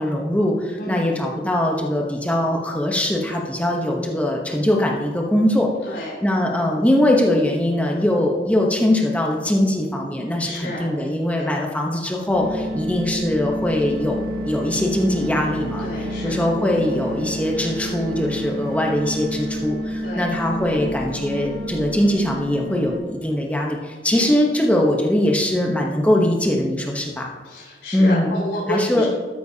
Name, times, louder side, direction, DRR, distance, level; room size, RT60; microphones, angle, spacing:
voice 1, 0.0-5.7 6.2-27.3 27.9-28.3 28.7-29.1, left 1 dB, 10° left, 0 dB, 0.9 m, -21 dB
voice 2, 0.8-1.1 5.8-6.2 10.4-10.9 11.3-11.6 15.8-16.4 20.0-20.3 24.1-24.4 27.4-29.1, left 1 dB, 80° left, -5 dB, 3.2 m, -30 dB
sound 1, 12.3-23.0, equal, 55° right, 1.7 m, -29 dB
13.0 x 9.3 x 2.8 m, 1.4 s
head